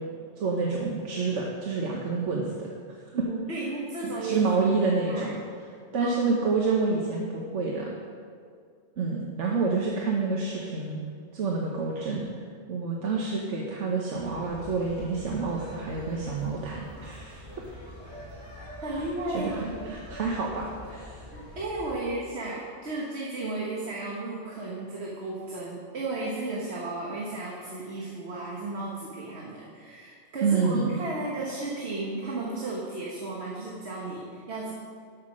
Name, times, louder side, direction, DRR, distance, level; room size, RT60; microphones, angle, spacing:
voice 1, 0.4-2.7 3.2-3.3 4.0-5.4 5.9-7.9 9.0-11.0 11.3-12.3 12.7-17.5 18.9-19.0 19.3-21.2 30.4-31.0, right 4 dB, 90° right, -1 dB, 1.3 m, -28 dB
voice 2, 3.1-4.8 5.1-5.4 6.0-6.6 18.8-20.0 21.3-34.7, right 2 dB, 65° right, -4 dB, 1.6 m, -34 dB
sound 1, 14.1-22.0, equal, 25° right, 2.0 m, -44 dB
12.5 x 5.8 x 6.2 m, 2.2 s
omnidirectional pair, 1.2 m